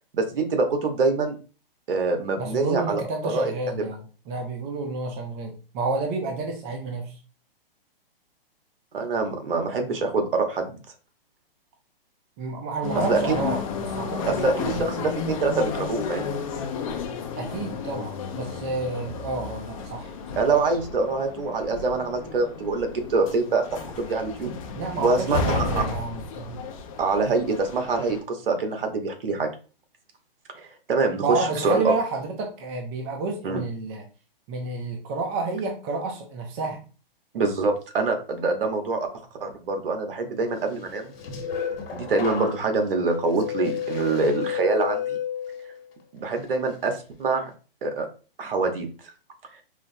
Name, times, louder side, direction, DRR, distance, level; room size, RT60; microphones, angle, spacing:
voice 1, 0.1-1.4 1.9-3.5 8.9-10.8 13.1-13.4 14.3-16.3 20.4-24.5 25.0-25.8 27.0-29.5 30.5-31.9 33.4-33.6 37.3-39.1 39.4-41.1 41.9-45.2 46.1-47.5 47.8-48.1 48.4-48.9, right 3 dB, 70° right, 5 dB, 1.1 m, -25 dB
voice 2, 2.4-7.1 12.4-15.0 17.4-20.1 24.8-26.6 31.2-34.0 34.5-36.8, right 3 dB, 20° right, 3 dB, 0.4 m, -30 dB
sound 1, 12.8-28.2, left 5 dB, 35° left, 0.6 m, -32 dB
sound 2, 40.9-45.9 46.3-46.7, left 8 dB, 75° left, 1.2 m, -32 dB
4.6 x 2.0 x 2.7 m, 0.36 s
hypercardioid pair, 140°, 29 cm